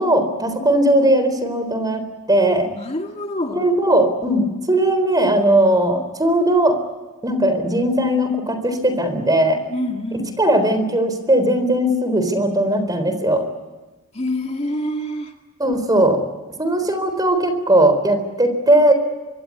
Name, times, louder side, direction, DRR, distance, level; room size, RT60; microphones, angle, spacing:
voice 1, 0.0-2.0 2.3-2.7 3.5-6.8 7.2-9.6 10.4-13.4 15.6-16.2 16.6-18.9, right 1 dB, 15° right, 9 dB, 3.9 m, -18 dB
voice 2, 2.6-3.7 9.7-10.3 14.1-15.3, left 1 dB, 30° left, 3 dB, 2.0 m, -26 dB
24.5 x 24.0 x 8.5 m, 1.2 s
head